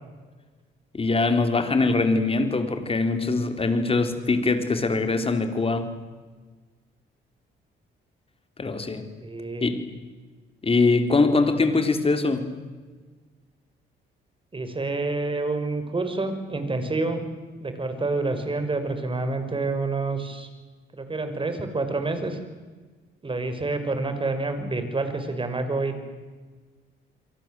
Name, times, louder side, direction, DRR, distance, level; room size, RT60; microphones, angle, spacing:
voice 1, 0.9-5.9 8.6-9.1 9.6-9.8 10.6-12.5, left 3 dB, 30° left, 7 dB, 4.0 m, -22 dB
voice 2, 9.2-9.7 14.5-17.3 17.6-20.5 20.9-22.4 23.2-26.0, right 3 dB, 25° right, 8 dB, 5.5 m, -28 dB
29.0 x 23.5 x 7.9 m, 1.4 s
cardioid pair, 90°, 20 cm